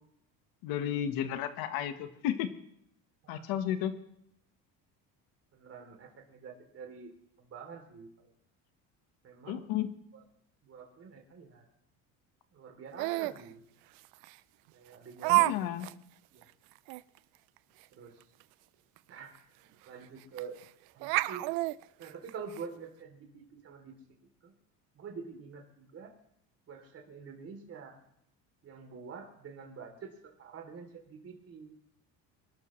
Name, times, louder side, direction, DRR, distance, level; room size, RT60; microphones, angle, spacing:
voice 1, 0.6-2.5 3.3-3.9 9.5-9.9 15.3-15.9, left 10 dB, 75° left, 9 dB, 1.4 m, -33 dB
voice 2, 5.5-7.1 7.4-8.1 9.2-9.7 10.6-11.7 12.5-13.6 14.7-15.6 16.3-16.4 17.9-18.2 19.1-20.6 20.9-21.5 22.0-23.9 24.4-24.5 24.9-26.1 26.7-28.0 28.6-31.7, right 6 dB, 40° right, 3 dB, 3.2 m, -47 dB
Laughter, 13.0-13.4 14.2-14.3 15.2-15.5 15.8-15.9 16.4-16.5 16.9-17.0 19.0-19.1 19.3-19.4 20.4-20.6 21.0-22.6, right 22 dB, 90° right, 0.5 m, -28 dB
25.0 x 12.0 x 3.2 m, 0.72 s
cardioid pair, 130°, 36 cm